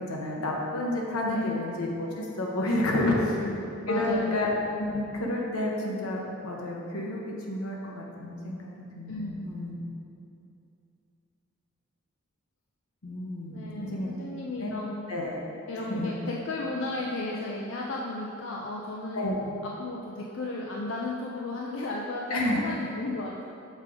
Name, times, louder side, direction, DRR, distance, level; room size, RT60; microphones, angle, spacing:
voice 1, 0.0-3.1 3.9-9.7 13.0-14.1 14.6-14.7 15.1-15.4 15.9-16.1 19.1-19.4 22.3-22.6, left 1 dB, 85° left, -2 dB, 1.0 m, -30 dB
voice 2, 3.0-4.4 9.1-9.5 13.5-15.0 15.7-19.4 19.6-23.4, left 2 dB, 65° left, -2 dB, 0.5 m, -34 dB
6.5 x 3.7 x 4.8 m, 2.6 s
head